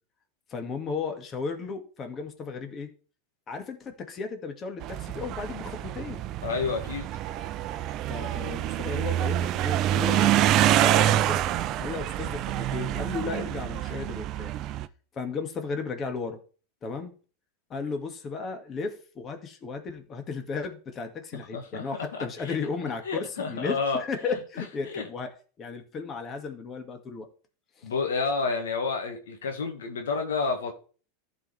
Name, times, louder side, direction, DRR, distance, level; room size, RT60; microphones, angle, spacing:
voice 1, 0.5-2.9 3.5-6.2 8.1-11.5 11.8-14.5 15.1-16.4 16.8-17.1 17.7-27.3 27.8-27.9, left 4 dB, 35° left, 5 dB, 2.0 m, -35 dB
sound 1, 4.8-14.9, right 12 dB, 45° right, 0.6 m, -26 dB
voice 2, 6.4-7.1 21.5-22.6 23.0-24.0 24.9-25.0 27.8-30.7, left 4 dB, 80° left, 4 dB, 1.7 m, -30 dB
14.5 x 5.0 x 3.4 m, 0.39 s
hypercardioid pair, 95°, 0 cm